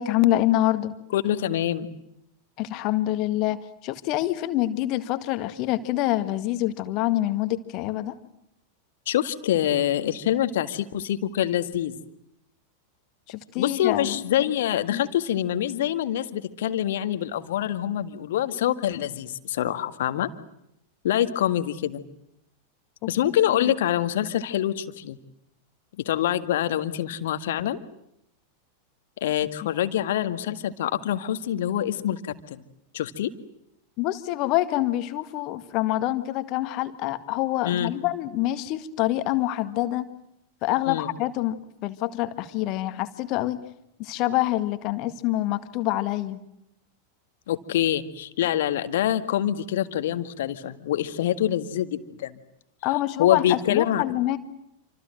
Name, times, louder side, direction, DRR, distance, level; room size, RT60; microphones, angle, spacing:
voice 1, 0.0-0.9 2.6-8.1 13.3-14.2 14.9-15.0 23.0-23.1 23.5-23.7 34.0-40.1 40.6-43.6 44.0-46.4 52.8-54.4, left 15 dB, 40° left, 10 dB, 1.9 m, -26 dB
voice 2, 1.1-1.9 9.1-11.9 13.6-20.3 21.0-22.0 23.1-25.2 26.0-27.8 29.2-32.2 32.5-32.6 32.9-33.3 37.6-37.9 40.9-41.1 47.5-52.3 53.2-54.0, left 11 dB, 55° left, 10 dB, 1.8 m, -25 dB
27.5 x 26.0 x 7.8 m, 0.78 s
figure-of-eight pair, 90°, 0 cm